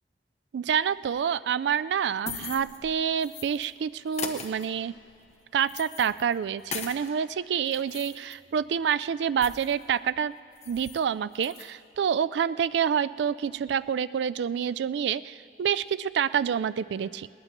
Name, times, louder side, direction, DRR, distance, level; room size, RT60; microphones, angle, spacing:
voice 1, 0.5-4.9 5.5-10.3 10.7-17.3, right 8 dB, 80° right, 16 dB, 0.3 m, -27 dB
sound 1, 1.9-3.7 4.1-7.1 7.5-9.9 10.2-10.3 10.5-11.0 11.3-11.7, left 6 dB, 40° left, 0.9 m, -41 dB
19.5 x 19.0 x 3.0 m, 2.5 s
head